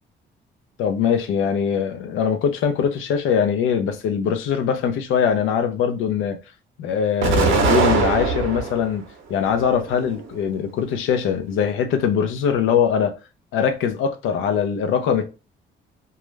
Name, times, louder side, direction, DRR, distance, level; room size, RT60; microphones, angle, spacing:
voice 1, 0.8-6.4 6.8-13.1 13.5-15.3, left 7 dB, 85° left, 0.5 m, -22 dB
Explosion, 7.2-8.9 9.4-10.3, right 4 dB, 80° right, 0.6 m, -21 dB
2.3 x 2.0 x 3.1 m
cardioid pair, 90°, 20 cm